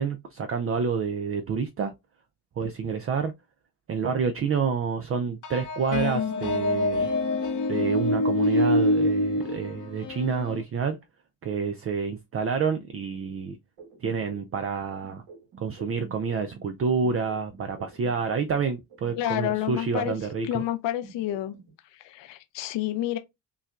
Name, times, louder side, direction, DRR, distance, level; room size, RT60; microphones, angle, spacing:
voice 1, 0.0-1.9 2.6-3.3 3.9-7.1 7.7-11.0 11.4-13.6 14.0-15.2 15.6-20.6, right 5 dB, 30° right, 0.5 m, -28 dB
sound 1, 5.4-10.6, left 1 dB, 40° left, 0.8 m, -25 dB
sound 2, 13.8-16.7 17.0-20.7 21.0-21.7, right 4 dB, 65° right, 1.7 m, -49 dB
voice 2, 19.2-20.2 20.5-21.6 21.9-23.2, left 13 dB, 70° left, 0.7 m, -29 dB
5.5 x 2.2 x 2.4 m
cardioid pair, 95°, 46 cm